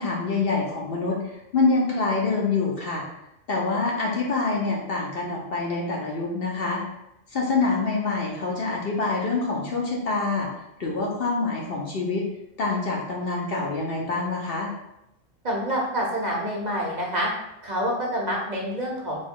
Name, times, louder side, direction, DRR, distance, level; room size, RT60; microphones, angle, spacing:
voice 1, 0.0-3.0 3.5-6.8 7.3-10.5 10.8-12.2 12.6-14.7, left 3 dB, 55° left, -2 dB, 0.9 m, -26 dB
voice 2, 15.4-17.3 17.6-19.3, equal, 40° right, -3 dB, 0.9 m, -27 dB
4.1 x 2.9 x 3.6 m, 0.86 s
omnidirectional pair, 1.3 m